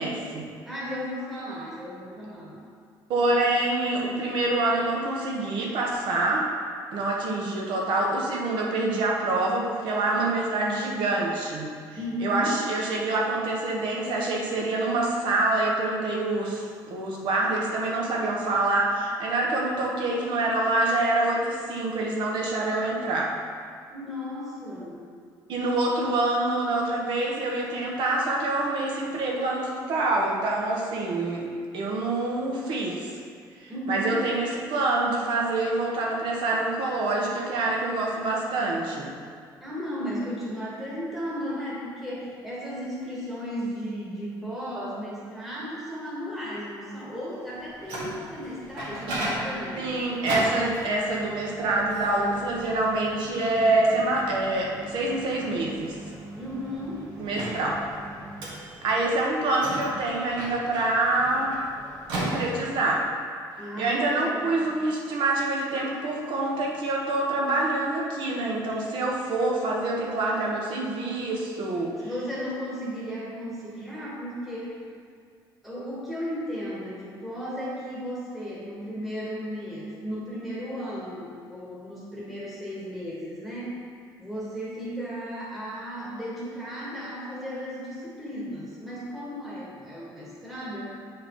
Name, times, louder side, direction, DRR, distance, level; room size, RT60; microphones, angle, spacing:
voice 1, 0.0-0.5 3.1-6.5 6.9-11.7 12.2-23.3 25.5-31.5 31.7-33.1 33.6-39.1 49.8-56.0 57.2-57.8 58.8-61.6 62.1-63.1 63.8-71.9, right 2 dB, 65° right, -2 dB, 1.1 m, -26 dB
voice 2, 0.6-2.6 12.0-12.6 23.9-25.0 33.7-34.2 39.6-49.9 56.3-57.0 63.6-64.7 72.0-74.8 75.6-83.8 84.2-91.0, equal, ahead, -8 dB, 1.3 m, -35 dB
Microwave oven, 47.5-63.0, right 1 dB, 80° right, 1.7 m, -37 dB
8.4 x 4.9 x 3.0 m, 2.1 s
cardioid pair, 170°, 9 cm